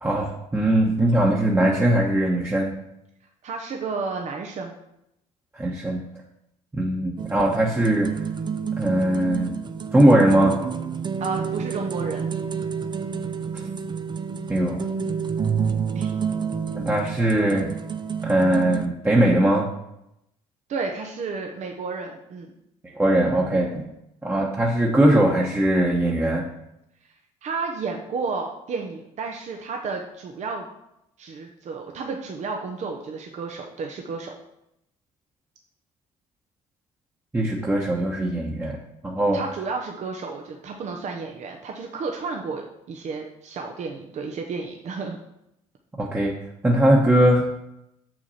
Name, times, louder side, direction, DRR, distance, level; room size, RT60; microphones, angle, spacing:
voice 1, 0.0-2.7 5.5-6.0 6.7-8.1 8.8-9.6 9.9-10.6 14.5-14.9 16.8-17.7 18.2-19.7 22.9-23.9 24.2-26.5 37.3-38.8 39.0-39.4 46.0-46.3 46.6-47.5, right 1 dB, 15° right, -2 dB, 1.2 m, -20 dB
voice 2, 3.4-4.8 11.2-12.3 15.9-16.2 20.7-22.5 27.4-30.7 31.2-34.3 39.3-45.2, right 4 dB, 55° right, 2 dB, 0.9 m, -32 dB
sound 1, 7.2-18.9, right 6 dB, 30° right, 0.6 m, -29 dB
6.5 x 6.0 x 4.2 m, 0.83 s
supercardioid pair, 65°, 15 cm